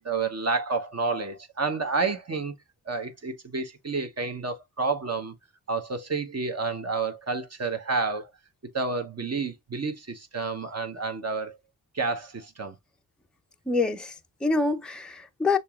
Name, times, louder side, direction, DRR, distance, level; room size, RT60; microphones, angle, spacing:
voice 1, 0.0-2.6 2.9-5.3 5.7-8.3 8.7-11.6 11.9-12.8, right 4 dB, 35° right, 1.0 m, -30 dB
voice 2, 13.7-15.6, left 3 dB, ahead, 0.6 m, -26 dB
6.7 x 2.9 x 2.4 m
cardioid pair, 80°, 44 cm